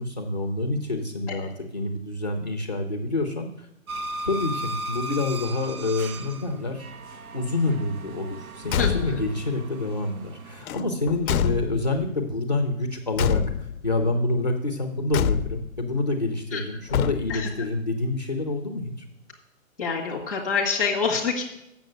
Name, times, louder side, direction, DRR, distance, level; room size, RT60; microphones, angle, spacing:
voice 1, 0.0-3.7 4.2-6.9 7.3-19.1, left 2 dB, 30° left, 3 dB, 0.5 m, -27 dB
sound 1, 3.9-10.6, right 2 dB, 85° right, 1.1 m, -37 dB
Car / Truck / Slam, 8.6-9.4 10.6-12.1 13.1-13.9 15.1-15.8 16.9-17.6, left 9 dB, 85° left, 0.5 m, -27 dB
voice 2, 8.8-9.2 16.5-16.6 17.3-17.5 19.8-21.4, left 5 dB, ahead, -6 dB, 1.0 m, -26 dB
7.0 x 6.5 x 7.6 m, 0.86 s
hypercardioid pair, 175°, 41 cm